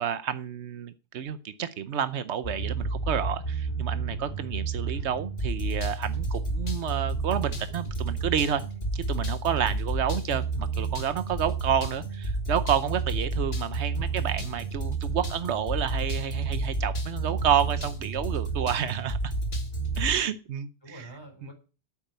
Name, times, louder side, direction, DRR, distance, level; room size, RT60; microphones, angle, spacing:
voice 1, 0.0-8.6 8.9-19.2 20.0-21.0, right 9 dB, 90° right, 12 dB, 1.1 m, -30 dB
sound 1, 2.4-20.2, right 3 dB, 65° left, 2.3 m, -30 dB
voice 2, 19.6-20.1 20.8-21.5, right 3 dB, 25° left, 3 dB, 4.0 m, -47 dB
8.6 x 8.5 x 9.0 m, 0.34 s
omnidirectional pair, 1.1 m